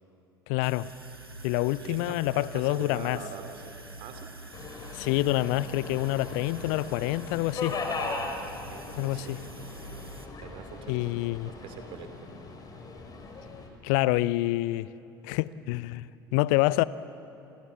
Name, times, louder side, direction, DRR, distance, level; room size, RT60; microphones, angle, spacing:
voice 1, 0.5-0.9 1.4-3.2 4.9-7.8 9.0-9.4 10.9-11.5 13.8-14.9 15.2-16.8, left 17 dB, 60° left, 0.6 m, -27 dB
sound 1, 0.6-10.3, right 2 dB, 85° right, 1.6 m, -46 dB
voice 2, 1.8-4.3 8.4-9.4 10.4-12.4, right 6 dB, 50° right, 3.3 m, -44 dB
Subway metro underground, 4.5-13.7, left 3 dB, 35° left, 4.6 m, -39 dB
28.5 x 28.0 x 7.2 m
figure-of-eight pair, 65°, 12 cm